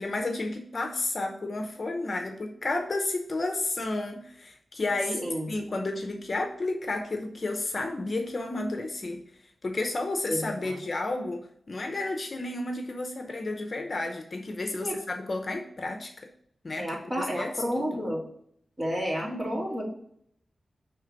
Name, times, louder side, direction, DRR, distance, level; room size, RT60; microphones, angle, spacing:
voice 1, 0.0-9.2 9.6-16.1 16.6-18.1 19.2-19.6, left 2 dB, 45° left, 4 dB, 0.7 m, -32 dB
voice 2, 5.2-5.5 10.3-10.8 14.8-15.0 16.8-18.2 18.8-19.9, equal, 30° right, -3 dB, 2.3 m, -31 dB
6.4 x 3.5 x 5.8 m, 0.67 s
wide cardioid pair, 130°, 0 cm